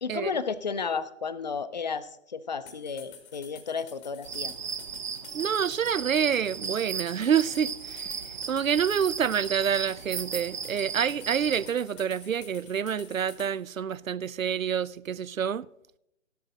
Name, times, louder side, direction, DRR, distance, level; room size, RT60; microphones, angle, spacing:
voice 1, 0.0-4.5, left 5 dB, 35° left, 0.5 m, -33 dB
sound 1, 2.7-13.5, left 7 dB, 10° left, 1.0 m, -49 dB
sound 2, 4.2-11.7, right 6 dB, 35° right, 0.8 m, -36 dB
voice 2, 5.3-8.1 8.5-15.7, right 8 dB, 85° right, 0.5 m, -27 dB
14.0 x 11.0 x 3.9 m
figure-of-eight pair, 135°, 39 cm